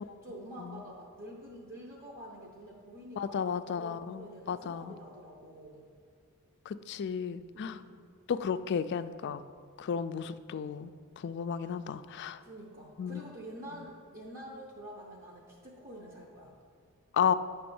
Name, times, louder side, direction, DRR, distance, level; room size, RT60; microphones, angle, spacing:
voice 1, 0.0-5.8 7.5-8.0 12.4-16.5, right 1 dB, 40° right, -2 dB, 1.0 m, -47 dB
voice 2, 3.2-4.9 6.7-7.8 8.3-9.4 9.8-10.9 11.2-12.4 13.0-13.2 17.1-17.3, left 7 dB, 50° left, 12 dB, 0.3 m, -33 dB
9.5 x 3.4 x 6.9 m, 2.3 s
head